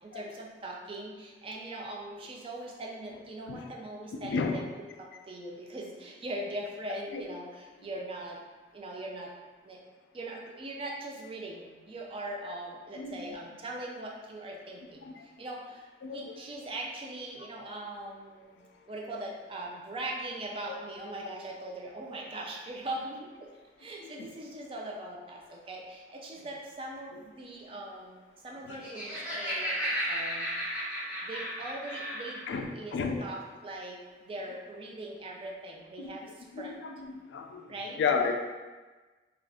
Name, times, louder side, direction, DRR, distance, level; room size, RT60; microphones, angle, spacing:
voice 1, 0.0-4.7 5.0-8.4 8.7-9.3 9.6-9.8 10.1-23.5 23.8-30.5 31.2-36.7 37.7-38.0, right 1 dB, 30° right, -2 dB, 0.4 m, -41 dB
voice 2, 4.1-4.6 7.1-7.2 13.0-13.2 15.0-15.3 16.0-16.3 24.0-24.3 28.6-28.8 32.5-33.2 36.0-38.3, left 5 dB, 80° left, 4 dB, 0.3 m, -33 dB
Laughter, 28.6-32.4, equal, 5° right, 0.7 m, -34 dB
2.4 x 2.3 x 3.5 m, 1.3 s
head